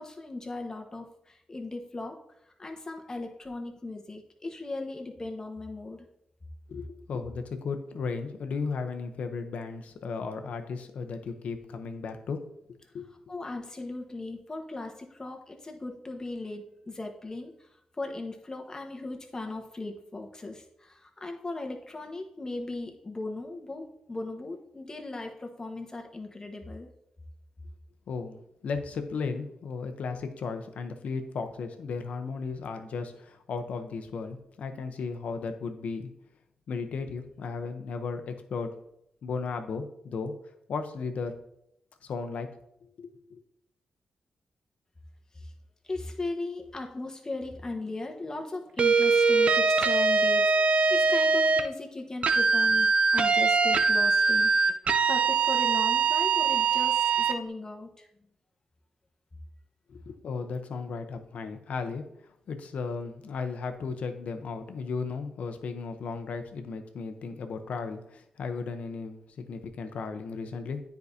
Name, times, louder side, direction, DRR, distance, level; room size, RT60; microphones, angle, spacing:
voice 1, 0.0-2.2 2.6-6.1 13.3-17.7 18.0-26.9 45.3-45.5 45.8-54.5 55.1-58.1, left 2 dB, 30° left, 3 dB, 1.2 m, -37 dB
voice 2, 6.7-12.4 12.7-13.1 28.1-36.1 36.7-38.7 39.2-40.3 40.7-41.3 42.0-42.5 42.8-43.4 59.9-70.8, left 4 dB, 75° left, 7 dB, 0.8 m, -35 dB
sound 1, 48.8-51.7 52.2-57.4, right 4 dB, 60° right, 0.5 m, -23 dB
9.5 x 4.7 x 2.7 m, 0.77 s
cardioid pair, 70°, 2 cm